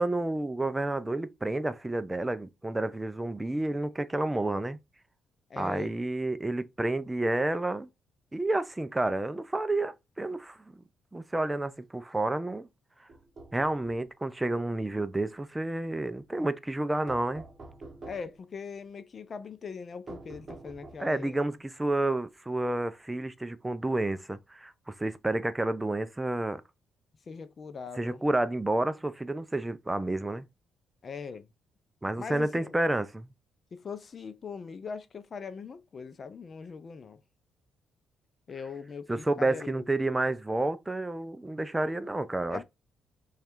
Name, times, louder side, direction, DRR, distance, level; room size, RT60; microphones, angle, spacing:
voice 1, 0.0-4.8 5.6-7.9 8.3-10.8 11.1-12.7 13.5-17.4 21.0-26.6 28.0-30.5 32.0-33.3 39.1-42.6, right 2 dB, 15° right, 0.4 m, -30 dB
voice 2, 5.5-6.0 18.1-21.4 27.2-28.2 31.0-31.5 32.2-32.7 33.7-37.2 38.5-39.8 42.5-42.6, left 5 dB, 45° left, 0.5 m, -41 dB
sound 1, 13.1-14.1 17.1-18.4 20.1-21.2, right 2 dB, 35° right, 0.9 m, -46 dB
3.2 x 2.4 x 4.4 m
cardioid pair, 90°, 0 cm